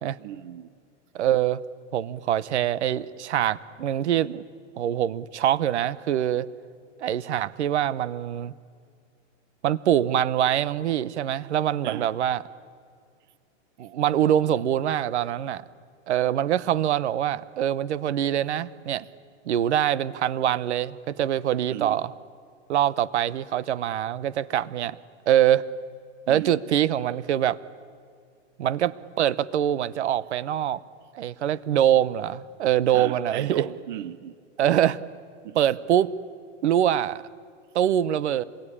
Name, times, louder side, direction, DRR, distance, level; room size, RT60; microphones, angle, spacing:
voice 1, 0.2-0.7 11.8-12.1 21.7-22.0 26.3-26.6 32.9-34.4 35.4-35.6, right 12 dB, 40° right, 0.8 m, -36 dB
voice 2, 1.1-1.6 1.9-4.4 4.8-6.5 7.0-8.5 9.6-12.4 13.8-15.6 16.1-19.1 19.5-22.1 22.7-25.0 25.3-25.7 26.3-27.6 28.6-30.8 31.1-33.6 34.6-35.0 35.5-36.1 36.6-37.2 37.7-38.4, right 11 dB, 70° right, 1.0 m, -24 dB
27.0 x 22.0 x 10.0 m
supercardioid pair, 170°, 35 cm